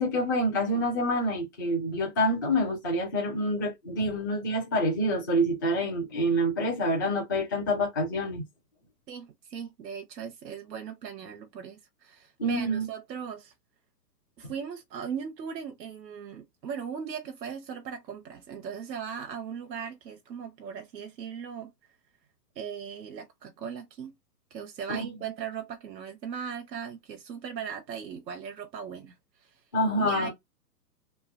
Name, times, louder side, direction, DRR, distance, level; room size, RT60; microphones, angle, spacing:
voice 1, 0.0-8.4 12.4-12.9 24.9-25.1 29.7-30.3, equal, 15° left, 0.5 m, -27 dB
voice 2, 9.1-13.5 14.4-21.7 22.6-24.1 24.5-29.2 30.0-30.3, right 7 dB, 85° right, 0.9 m, -38 dB
3.2 x 2.1 x 2.4 m
hypercardioid pair, 150°, 50 cm